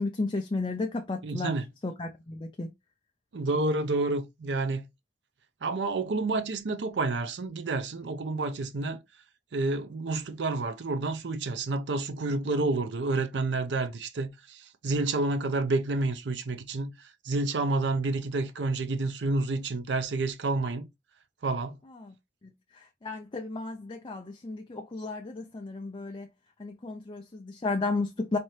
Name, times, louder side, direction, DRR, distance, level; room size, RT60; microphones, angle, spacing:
voice 1, 0.0-1.5 1.8-2.7 22.0-22.1 22.7-26.3 26.6-28.4, left 3 dB, 30° left, 0.5 m, -33 dB
voice 2, 1.2-1.7 3.3-4.9 5.6-9.0 9.5-20.9 21.4-21.8, right 2 dB, 80° right, 0.6 m, -29 dB
4.2 x 2.7 x 3.1 m
head